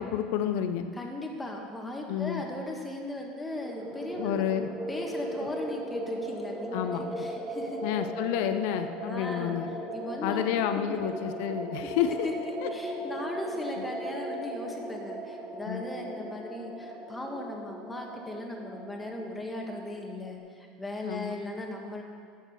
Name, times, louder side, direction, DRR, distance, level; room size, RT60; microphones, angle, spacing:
voice 1, 0.0-0.8 2.1-2.4 4.2-4.7 5.4-5.5 6.7-7.3 7.8-9.8 10.2-12.2 12.6-12.7 13.8-13.9 15.6-15.8 21.0-21.3, left 10 dB, 70° left, 8 dB, 0.7 m, -30 dB
voice 2, 0.9-7.8 9.0-9.6 9.9-10.4 11.8-11.9 12.2-22.0, left 1 dB, 10° left, 0 dB, 1.6 m, -38 dB
sound 1, 3.5-20.4, right 1 dB, 20° right, 1.5 m, -38 dB
11.0 x 6.5 x 6.5 m, 2.2 s
supercardioid pair, 125°, 0 cm